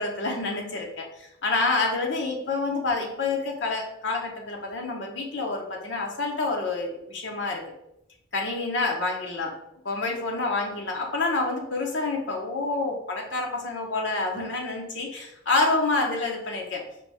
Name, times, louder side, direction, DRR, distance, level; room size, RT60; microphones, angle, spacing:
voice 1, 0.0-7.6 8.3-9.5 9.8-16.8, left 3 dB, 60° left, 1 dB, 0.8 m, -28 dB
4.6 x 2.7 x 3.4 m, 0.81 s
head